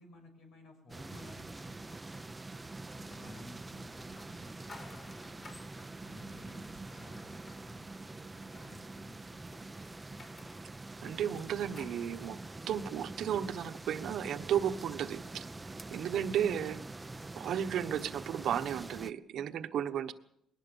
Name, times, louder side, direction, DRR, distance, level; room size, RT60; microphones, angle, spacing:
voice 1, 0.0-2.3 2.9-5.6 6.0-9.6, left 2 dB, 85° left, 4 dB, 6.6 m, -56 dB
sound 1, 0.9-19.1, right 2 dB, 20° right, 0.8 m, -45 dB
sound 2, 1.1-13.3, left 3 dB, 50° left, 6.3 m, -58 dB
voice 2, 11.0-12.4 12.7-15.5 15.9-16.8 17.3-20.1, right 9 dB, 75° right, 9 dB, 1.3 m, -34 dB
21.0 x 19.0 x 7.1 m, 0.76 s
cardioid pair, 90°, 0 cm